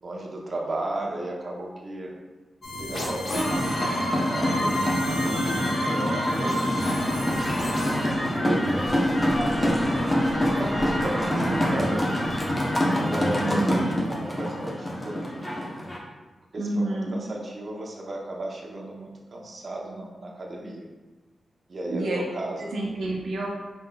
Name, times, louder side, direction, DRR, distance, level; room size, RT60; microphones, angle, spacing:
voice 1, 0.0-2.1 2.7-4.9 5.8-6.9 8.0-9.2 10.2-12.1 12.7-15.6 16.5-20.9 21.7-22.6, right 1 dB, 45° right, -2 dB, 0.7 m, -35 dB
sound 1, 2.6-8.1, equal, 50° left, 1.0 m, -30 dB
sound 2, 3.3-16.0, left 1 dB, 20° left, 0.7 m, -26 dB
sound 3, 7.0-12.7, right 1 dB, 20° right, 1.0 m, -36 dB
voice 2, 11.2-11.8 13.4-13.9 16.6-17.2 21.9-22.2 22.6-23.5, right 2 dB, 80° right, -2 dB, 0.7 m, -29 dB
5.0 x 3.8 x 2.2 m, 1.2 s
wide cardioid pair, 120°, 0 cm